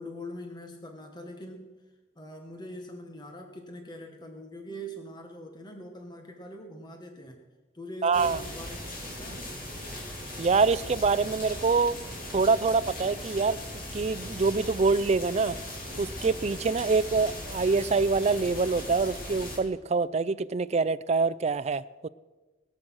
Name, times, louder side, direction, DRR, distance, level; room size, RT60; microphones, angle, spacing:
voice 1, 0.0-1.7 2.1-7.4 7.7-8.8 9.2-9.6, equal, 25° left, 1.3 m, -42 dB
voice 2, 8.0-8.4 10.4-12.0 12.3-15.6 16.0-22.1, right 4 dB, 35° right, 0.4 m, -25 dB
sound 1, 8.1-19.6, left 1 dB, 50° left, 3.0 m, -39 dB
21.0 x 7.9 x 6.2 m
head